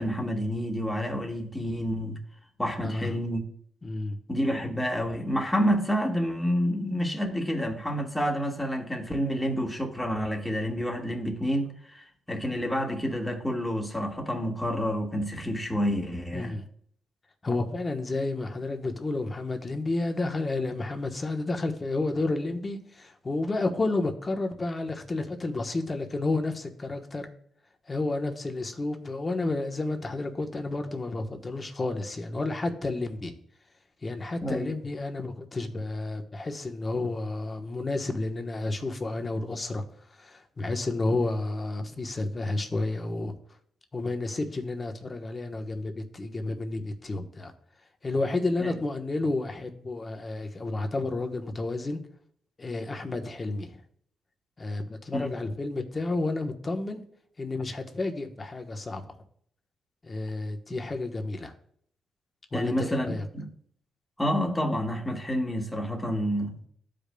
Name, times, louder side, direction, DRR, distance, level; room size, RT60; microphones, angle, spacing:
voice 1, 0.0-2.2 2.6-3.4 4.3-16.6 34.4-34.7 48.6-48.8 55.1-55.3 62.5-63.5 64.2-66.6, equal, 5° left, 1.5 m, -29 dB
voice 2, 3.8-4.2 16.3-16.6 17.4-27.3 27.9-33.3 34.0-39.8 40.2-43.3 43.9-47.5 48.0-52.0 52.6-53.8 54.6-57.0 57.4-59.2 60.0-61.5 62.5-63.2, left 2 dB, 30° left, 1.1 m, -31 dB
12.5 x 5.1 x 2.3 m
cardioid pair, 75°, 0 cm